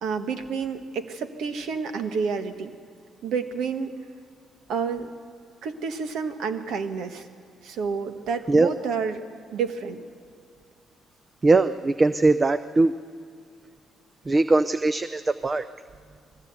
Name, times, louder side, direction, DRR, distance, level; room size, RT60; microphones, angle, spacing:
voice 1, 0.0-2.7 3.2-3.9 4.7-5.1 5.6-7.2 7.6-9.2 9.5-10.0, right 5 dB, 80° right, 8 dB, 1.5 m, -29 dB
voice 2, 11.4-12.9 14.3-15.6, right 3 dB, 30° right, 12 dB, 0.6 m, -20 dB
21.0 x 16.0 x 8.2 m, 2.3 s
cardioid pair, 90°, 0 cm